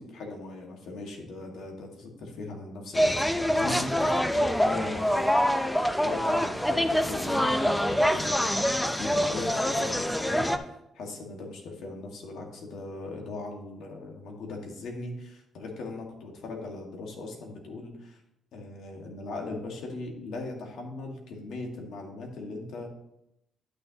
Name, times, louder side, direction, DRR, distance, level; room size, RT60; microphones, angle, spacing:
voice 1, 0.0-5.7 6.0-10.5 10.9-18.2 18.5-22.9, left 3 dB, 75° left, 1 dB, 1.8 m, -39 dB
sound 1, 2.9-10.6, equal, 5° left, 0.6 m, -25 dB
11.0 x 6.7 x 2.9 m, 0.83 s
cardioid pair, 90°, 0 cm